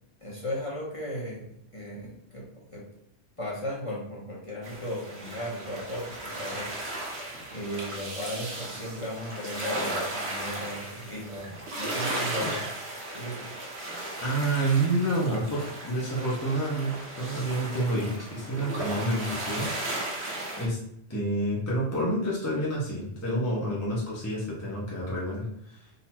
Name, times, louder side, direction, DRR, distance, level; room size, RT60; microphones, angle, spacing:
voice 1, 0.2-1.4 1.7-2.5 2.7-2.8 3.4-7.2 7.5-12.7 13.1-13.5, equal, 30° left, -5 dB, 1.3 m, -36 dB
sound 1, 4.6-20.6, right 1 dB, 70° right, 1.4 m, -36 dB
voice 2, 14.2-19.7 20.1-20.2 20.6-20.8 21.1-25.9, right 1 dB, 15° left, -6 dB, 1.1 m, -28 dB
4.0 x 2.9 x 4.3 m, 0.73 s
omnidirectional pair, 1.2 m